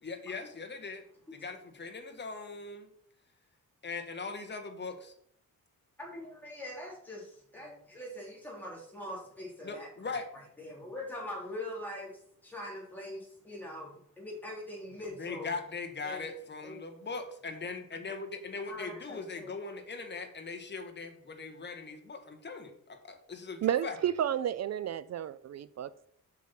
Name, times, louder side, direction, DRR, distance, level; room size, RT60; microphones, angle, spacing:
voice 1, 0.0-1.0 1.3-2.9 3.8-5.1 9.6-10.3 15.2-24.0, left 4 dB, 30° left, 1.5 m, -40 dB
voice 2, 6.0-10.2 10.6-15.6 16.0-16.4 16.6-16.8 18.7-19.5, left 1 dB, 5° left, 3.8 m, -43 dB
voice 3, 23.6-26.1, right 10 dB, 50° right, 0.4 m, -32 dB
7.5 x 5.4 x 5.9 m
cardioid pair, 130°, 35 cm